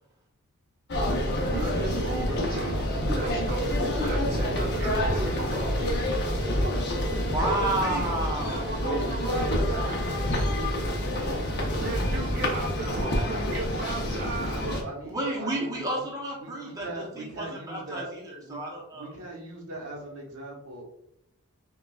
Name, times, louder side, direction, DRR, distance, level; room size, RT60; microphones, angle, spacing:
sound 1, 0.9-14.8, left 1 dB, 50° left, 0.8 m, -27 dB
voice 1, 1.5-5.8 7.4-8.1 8.4-10.1 11.8-14.6, right 3 dB, 45° right, -3 dB, 0.6 m, -35 dB
voice 2, 7.2-8.7 15.0-19.1, right 1 dB, 15° right, -3 dB, 0.8 m, -31 dB
voice 3, 14.6-16.0 16.4-18.1 18.4-18.6 18.9-20.9, right 2 dB, 75° right, -1 dB, 1.0 m, -40 dB
5.8 x 2.4 x 2.3 m, 0.81 s
head